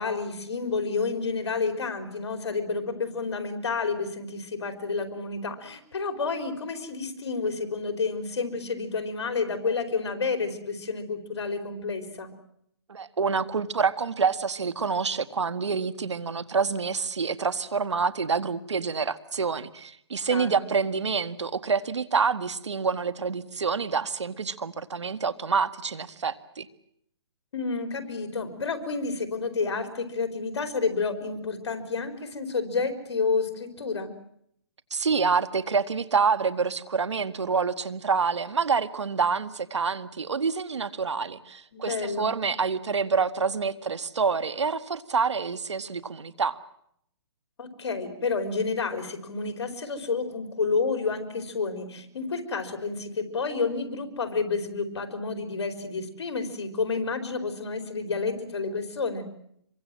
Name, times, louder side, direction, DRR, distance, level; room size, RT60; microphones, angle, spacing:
voice 1, 0.0-12.3 20.3-20.6 27.5-34.1 41.7-42.3 47.6-59.3, left 4 dB, 70° left, 7 dB, 4.2 m, -30 dB
voice 2, 12.9-26.7 34.9-46.6, right 5 dB, 90° right, 13 dB, 1.8 m, -27 dB
26.5 x 23.5 x 7.6 m, 0.71 s
hypercardioid pair, 155°, 14 cm